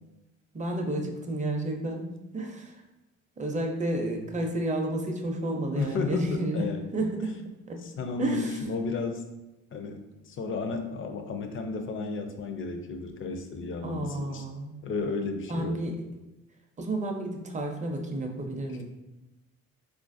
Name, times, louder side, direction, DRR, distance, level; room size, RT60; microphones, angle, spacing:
voice 1, 0.5-2.8 3.4-6.6 6.9-7.3 7.7-7.8 8.2-8.6 13.8-14.8 15.5-16.0 16.8-18.8, right 1 dB, 25° right, 3 dB, 0.5 m, -31 dB
voice 2, 5.8-6.9 7.8-9.2 9.7-14.4 14.8-15.8 18.7-18.8, left 4 dB, 45° left, 6 dB, 0.5 m, -33 dB
3.6 x 2.4 x 2.5 m, 0.99 s
cardioid pair, 90°, 30 cm